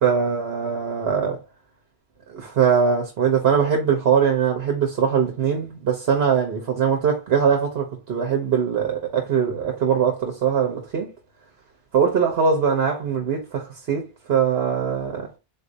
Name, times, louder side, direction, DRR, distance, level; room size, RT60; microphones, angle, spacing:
voice 1, 0.0-1.4 2.3-11.1 11.9-14.0 14.3-15.3, right 7 dB, 75° right, 1.1 m, -21 dB
3.9 x 2.6 x 2.6 m
omnidirectional pair, 1.0 m